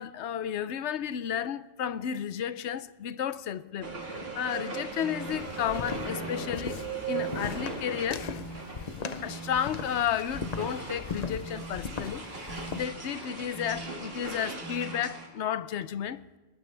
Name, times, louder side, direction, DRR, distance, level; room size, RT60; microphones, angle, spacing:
voice 1, 0.0-8.9 9.2-16.2, left 9 dB, 75° left, 0.9 m, -33 dB
sound 1, 3.8-15.3, right 3 dB, 55° right, 2.4 m, -39 dB
sound 2, 5.0-5.4 6.1-6.5 7.1-7.5 8.2-8.6 9.3-9.7 10.3-10.7 11.4-11.8 12.5-12.9 13.5-13.9 14.6-15.0, right 4 dB, 80° right, 1.8 m, -43 dB
sound 3, 5.3-12.8, left 5 dB, 40° left, 0.8 m, -39 dB
21.5 x 19.5 x 3.3 m
omnidirectional pair, 1.2 m